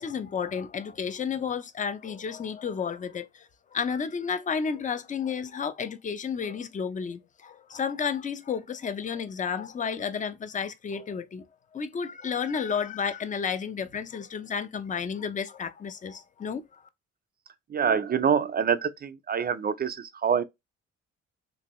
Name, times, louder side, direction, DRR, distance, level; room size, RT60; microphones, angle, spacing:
voice 1, 0.0-11.4 11.7-16.6, left 6 dB, 25° left, 0.5 m, -32 dB
voice 2, 17.7-20.4, right 7 dB, 30° right, 0.4 m, -26 dB
2.9 x 2.6 x 2.9 m
cardioid pair, 90°, 30 cm